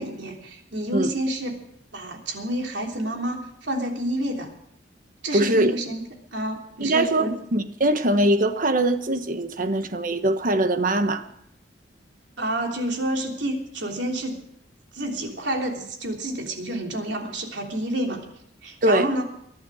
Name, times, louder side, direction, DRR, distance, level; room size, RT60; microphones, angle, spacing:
voice 1, 0.0-1.6 1.9-4.5 5.2-6.0 6.3-7.3 12.4-14.4 14.9-18.2 18.6-19.2, right 1 dB, 80° right, 3.3 m, -29 dB
voice 2, 5.3-5.8 6.8-11.2 18.8-19.1, right 1 dB, 50° right, 1.2 m, -22 dB
22.5 x 11.5 x 4.9 m
head